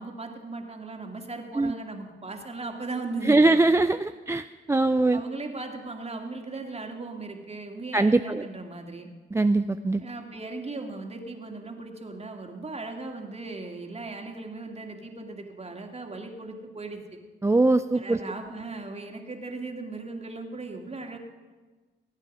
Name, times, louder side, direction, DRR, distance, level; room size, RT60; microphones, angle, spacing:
voice 1, 0.0-3.4 5.1-9.1 10.0-17.2 17.9-21.2, right 3 dB, 30° right, 3 dB, 2.4 m, -37 dB
voice 2, 3.2-5.2 7.9-8.5 9.3-10.0 17.4-18.2, right 2 dB, 15° right, 10 dB, 0.4 m, -22 dB
21.5 x 9.0 x 5.5 m, 1.3 s
cardioid pair, 60°, 20 cm